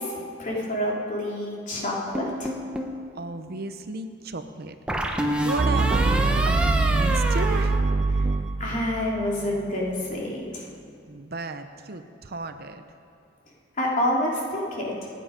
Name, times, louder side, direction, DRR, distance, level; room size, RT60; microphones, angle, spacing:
voice 1, 0.0-2.5 8.1-8.3 8.6-10.7 13.8-15.1, left 1 dB, 45° left, -3 dB, 3.3 m, -28 dB
sound 1, 2.1-3.0 4.9-8.5, right 1 dB, 5° right, 1.2 m, -27 dB
voice 2, 3.1-4.7 5.1-7.8 11.1-12.8, right 3 dB, 55° right, 8 dB, 0.8 m, -34 dB
sound 2, 5.6-9.7, right 3 dB, 30° right, 0.4 m, -24 dB
28.0 x 9.7 x 5.2 m, 2.3 s
head